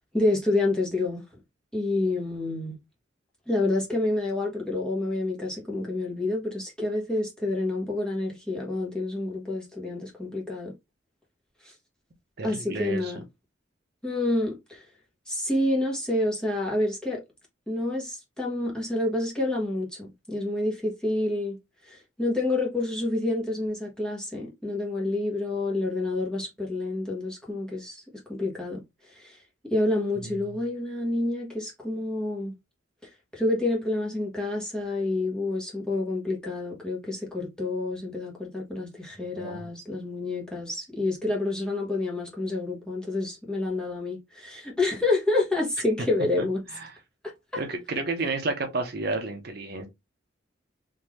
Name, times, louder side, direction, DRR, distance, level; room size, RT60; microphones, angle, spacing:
voice 1, 0.1-1.2 1.7-2.8 3.5-10.7 11.6-11.7 12.4-13.2 14.0-14.8 15.3-17.2 17.7-21.6 21.8-28.0 28.3-28.8 29.1-29.4 29.6-32.5 33.3-46.6 47.5-47.6, left 2 dB, 5° left, 1.2 m, -28 dB
voice 2, 12.4-13.1 30.2-30.4 39.3-39.7 46.4-46.9 47.6-49.9, right 3 dB, 55° right, 0.8 m, -31 dB
3.8 x 2.8 x 3.1 m
head